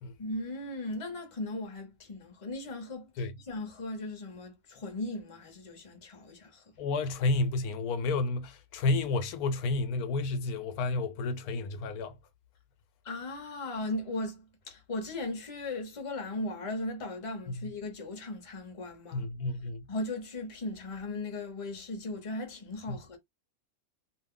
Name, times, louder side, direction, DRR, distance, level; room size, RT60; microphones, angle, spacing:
voice 1, 0.2-6.6 13.0-19.3 19.9-23.2, left 2 dB, 30° left, 0.8 m, -37 dB
voice 2, 6.8-12.2 17.6-17.7 19.1-19.9 22.9-23.0, left 3 dB, 80° left, 1.1 m, -31 dB
2.7 x 2.1 x 3.6 m
omnidirectional pair, 1.6 m